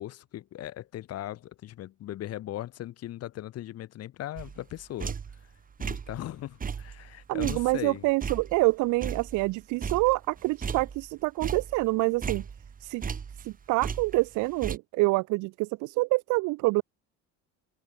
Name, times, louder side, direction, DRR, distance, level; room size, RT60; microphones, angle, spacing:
voice 1, 0.0-5.1 5.8-8.0, left 13 dB, 55° left, 1.9 m, -38 dB
sound 1, 4.4-5.5 5.8-6.2 6.6-9.5 9.8-11.1 11.4-13.5 13.8-14.8, right 6 dB, 25° right, 2.3 m, -36 dB
voice 2, 7.3-12.5 12.8-13.0 13.4-16.8, right 23 dB, 70° right, 0.7 m, -26 dB
cardioid pair, 125°, 31 cm